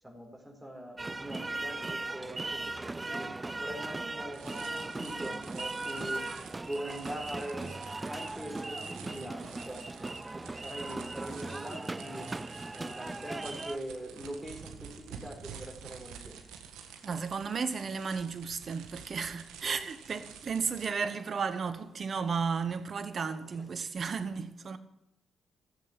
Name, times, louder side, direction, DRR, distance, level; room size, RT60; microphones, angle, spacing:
voice 1, 0.0-6.3 6.6-7.7 8.1-12.3 12.7-16.3 19.7-19.8 21.0-21.1 23.3-23.6, equal, 10° right, 4.5 m, -42 dB
sound 1, 1.0-13.8, right 2 dB, 25° right, 0.6 m, -38 dB
sound 2, 4.3-20.9, right 7 dB, 85° right, 1.6 m, -50 dB
voice 2, 17.0-24.8, right 5 dB, 50° right, 1.3 m, -34 dB
14.5 x 8.0 x 9.5 m
supercardioid pair, 55°, 0 cm